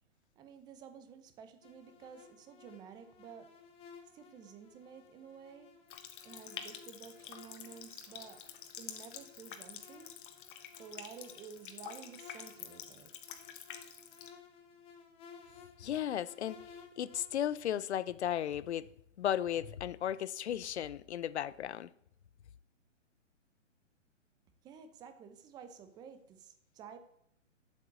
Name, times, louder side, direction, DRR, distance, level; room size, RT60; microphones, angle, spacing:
voice 1, 0.4-3.5 4.1-5.7 6.2-8.4 8.8-10.1 10.8-13.1 24.6-27.0, right 7 dB, 10° right, 0.7 m, -52 dB
sound 1, 1.6-17.6, left 6 dB, 15° left, 1.0 m, -57 dB
Water tap faucet, 5.9-14.3, left 9 dB, 40° left, 1.4 m, -48 dB
voice 2, 15.8-16.6 17.0-18.9 19.2-21.9, left 10 dB, 60° left, 0.7 m, -35 dB
8.0 x 7.5 x 8.4 m
hypercardioid pair, 140°, 38 cm